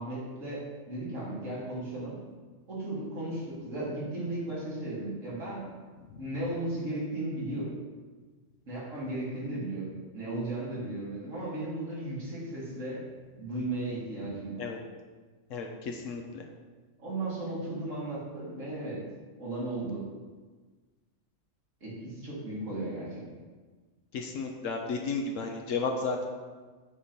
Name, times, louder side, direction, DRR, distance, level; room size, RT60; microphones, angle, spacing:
voice 1, 0.0-2.2 2.7-5.7 6.2-7.8 8.7-13.0 13.4-14.6 17.0-19.0 19.4-20.1 21.8-23.3, right 2 dB, 90° right, -7 dB, 2.4 m, -35 dB
voice 2, 15.5-16.4 24.1-26.3, left 4 dB, 80° left, 2 dB, 1.0 m, -33 dB
8.3 x 2.9 x 5.1 m, 1.4 s
omnidirectional pair, 1.3 m